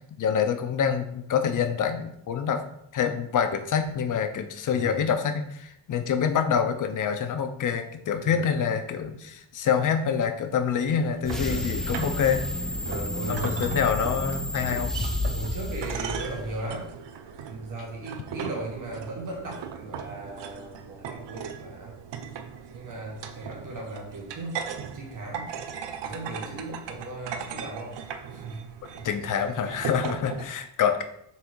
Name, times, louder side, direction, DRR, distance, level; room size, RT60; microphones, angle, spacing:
voice 1, 0.2-2.6 2.9-12.4 13.3-14.9 29.0-31.0, left 7 dB, 45° left, 7 dB, 0.7 m, -26 dB
voice 2, 4.7-5.0 8.2-8.5 11.3-11.7 12.9-13.8 15.3-16.9 17.5-22.0 22.7-24.7 24.9-25.5 26.0-28.0 28.3-28.6 28.9-29.1 30.3-30.4, right 2 dB, 45° right, -2 dB, 1.5 m, -37 dB
sound 1, 10.9-30.4, right 7 dB, 75° right, 0.8 m, -38 dB
sound 2, 11.2-16.7, left 1 dB, ahead, 0.4 m, -31 dB
5.8 x 3.7 x 4.6 m, 0.74 s
cardioid pair, 130°, 43 cm